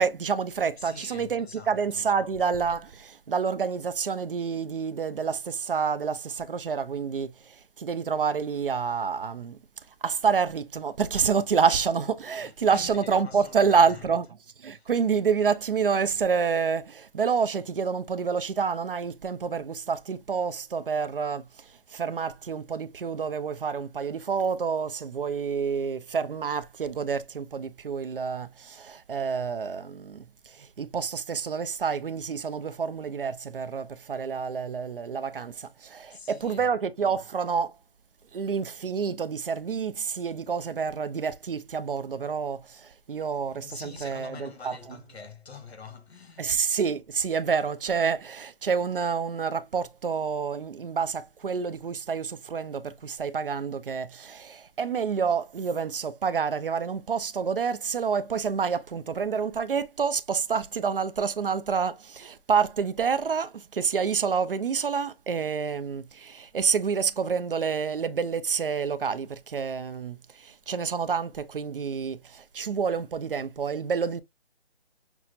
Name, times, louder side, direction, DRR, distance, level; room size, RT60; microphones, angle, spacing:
voice 1, 0.0-9.6 10.0-14.3 14.6-37.7 38.3-45.0 46.4-74.2, right 6 dB, 55° right, 0.4 m, -28 dB
voice 2, 0.8-2.0 12.4-14.1 14.7-14.9 36.1-36.7 43.4-46.6, left 5 dB, 75° left, 1.2 m, -45 dB
5.9 x 2.0 x 2.5 m
hypercardioid pair, 170°, 32 cm